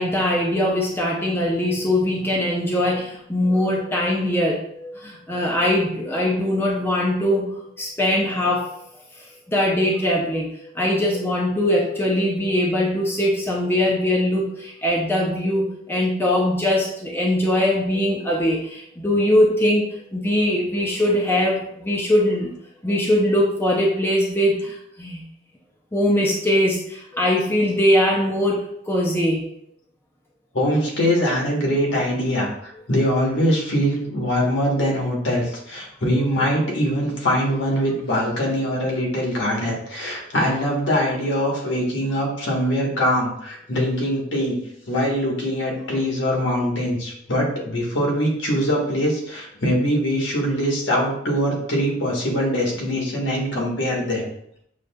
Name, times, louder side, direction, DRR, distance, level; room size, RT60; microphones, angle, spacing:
voice 1, 0.0-8.7 9.5-10.5 10.8-22.5 22.8-25.2 25.9-29.5, left 1 dB, 10° left, -3 dB, 0.4 m, -21 dB
voice 2, 30.5-44.6 44.9-54.2, equal, 75° left, -2 dB, 1.1 m, -22 dB
6.1 x 2.3 x 2.2 m, 0.70 s
head